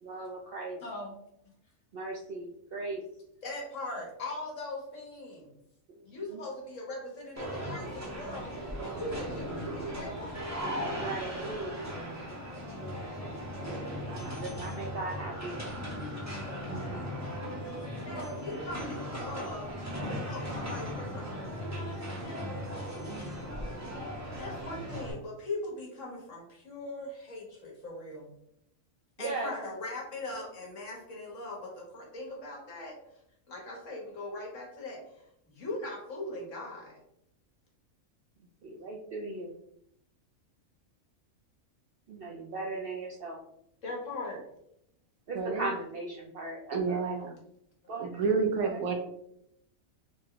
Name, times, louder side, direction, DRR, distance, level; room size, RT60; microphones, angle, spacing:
voice 1, 0.0-0.8 1.9-3.0 6.1-6.4 11.0-11.9 12.3-13.0 13.9-15.5 16.7-17.1 23.1-23.4 29.2-29.5 38.6-39.6 42.1-43.4 45.3-47.2 47.9-48.1 48.6-48.8, right 2 dB, 65° right, -1 dB, 0.5 m, -38 dB
voice 2, 0.8-1.1 3.4-5.5 6.0-10.4 18.0-19.7 20.1-21.2 21.6-22.5 24.4-28.3 29.2-32.9 33.5-35.0 35.5-37.0 43.8-44.4, left 2 dB, 65° left, -2 dB, 1.5 m, -40 dB
sound 1, 7.4-25.1, equal, 15° right, 0.7 m, -37 dB
voice 3, 45.3-45.7 46.7-47.3 48.0-49.0, right 5 dB, 85° right, 3 dB, 1.2 m, -29 dB
3.9 x 2.2 x 3.7 m, 0.75 s
omnidirectional pair, 1.4 m